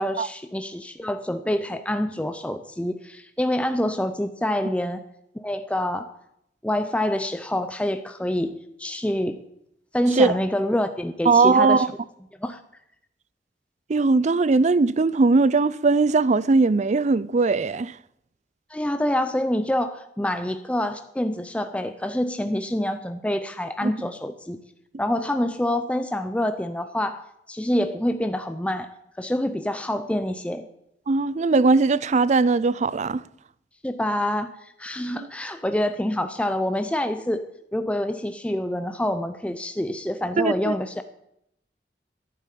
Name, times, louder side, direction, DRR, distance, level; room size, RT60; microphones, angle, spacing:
voice 1, 0.0-5.0 5.3-6.1 6.6-9.4 9.9-11.8 12.4-12.6 18.7-24.6 25.0-27.2 27.5-28.9 29.2-30.7 33.8-37.5 37.7-41.0, left 1 dB, 5° left, 0.6 m, -26 dB
voice 2, 11.3-11.9 13.9-17.9 23.8-23.9 31.1-33.2 35.1-35.3 40.4-40.7, right 3 dB, 40° right, 0.5 m, -19 dB
11.0 x 9.3 x 9.2 m
head